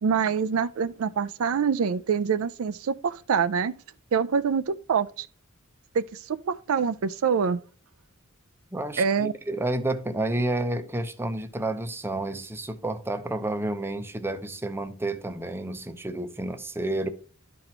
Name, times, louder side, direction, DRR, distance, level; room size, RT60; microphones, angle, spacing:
voice 1, 0.0-3.7 4.1-5.3 5.9-7.6 9.0-9.3, right 6 dB, 70° right, 0.4 m, -25 dB
voice 2, 8.7-17.1, right 1 dB, 10° right, 0.7 m, -30 dB
11.5 x 4.2 x 4.4 m
head